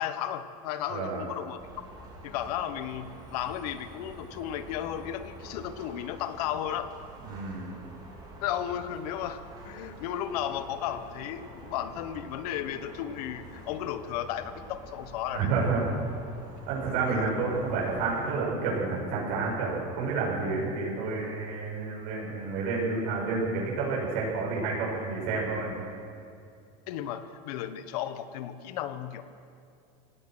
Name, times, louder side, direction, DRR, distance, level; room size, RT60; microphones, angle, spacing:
voice 1, 0.0-1.6 2.2-6.9 8.4-15.5 17.1-17.3 26.9-29.2, left 10 dB, 90° left, 11 dB, 1.4 m, -34 dB
voice 2, 0.9-1.3 7.2-7.7 15.3-15.9 16.7-25.8, right 4 dB, 70° right, -4 dB, 7.0 m, -30 dB
sound 1, 1.6-18.3, right 2 dB, 20° right, 4.6 m, -47 dB
25.5 x 17.5 x 6.4 m, 2.4 s
cardioid pair, 155°, 19 cm